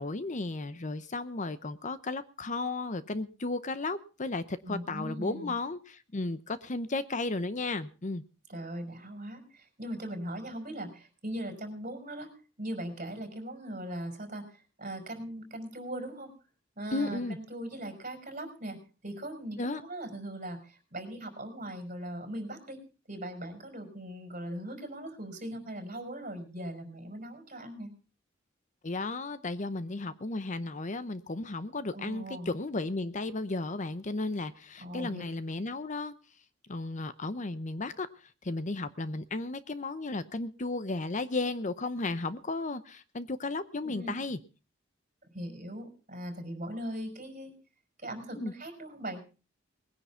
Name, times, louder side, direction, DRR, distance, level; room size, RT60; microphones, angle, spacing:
voice 1, 0.0-8.2 16.9-17.4 19.6-19.8 28.8-36.1 36.7-44.4 48.3-48.5, left 2 dB, 40° left, 0.8 m, -34 dB
voice 2, 4.7-5.5 8.5-12.3 12.6-16.3 16.8-18.8 19.0-22.8 23.1-27.9 31.9-32.5 34.8-35.2 43.8-44.2 45.3-47.6 48.0-49.2, right 1 dB, 40° right, 5.3 m, -39 dB
20.5 x 10.0 x 5.7 m
head